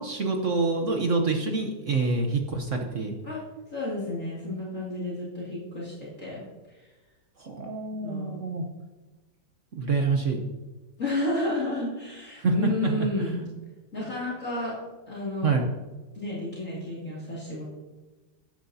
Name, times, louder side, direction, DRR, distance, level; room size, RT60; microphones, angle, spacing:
voice 1, 0.0-3.2 7.4-8.6 9.7-10.4 12.4-13.3 15.4-15.7, right 3 dB, 50° right, 3 dB, 1.0 m, -26 dB
voice 2, 3.7-6.8 7.9-8.4 11.0-13.5 13.9-14.7 15.1-15.6 16.1-17.6, left 2 dB, 40° left, -6 dB, 2.8 m, -31 dB
13.0 x 10.5 x 2.8 m, 1.2 s
omnidirectional pair, 2.2 m